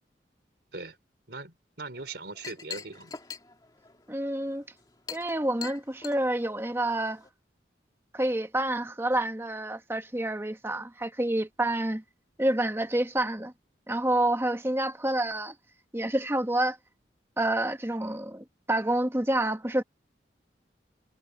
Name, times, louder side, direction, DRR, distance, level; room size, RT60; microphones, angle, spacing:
voice 1, 1.3-3.2, right 3 dB, 70° right, 3.9 m, -40 dB
Chink clink, 1.9-7.3, left 6 dB, 20° left, 2.2 m, -45 dB
voice 2, 4.1-4.6 5.1-7.2 8.1-12.0 12.4-13.5 13.9-15.5 15.9-16.8 17.4-19.8, right 1 dB, 15° right, 1.1 m, -28 dB
head